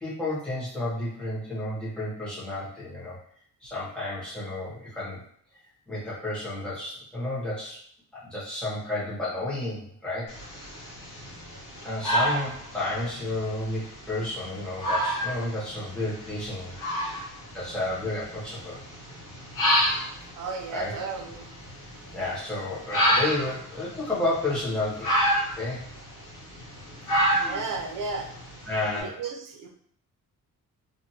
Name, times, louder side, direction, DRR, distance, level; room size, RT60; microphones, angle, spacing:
voice 1, 0.0-3.1 3.6-5.2 5.9-7.8 8.1-10.3 11.8-16.7 17.5-18.8 20.7-20.9 22.1-25.2 25.5-25.8 28.7-29.2, left 2 dB, 5° left, -9 dB, 1.1 m, -31 dB
sound 1, 10.3-29.0, equal, 90° left, 1.1 m, -30 dB
voice 2, 20.4-21.5 27.4-28.3 28.9-29.7, right 4 dB, 80° right, 3 dB, 0.6 m, -34 dB
2.5 x 2.5 x 2.8 m, 0.63 s
wide cardioid pair, 160°, 32 cm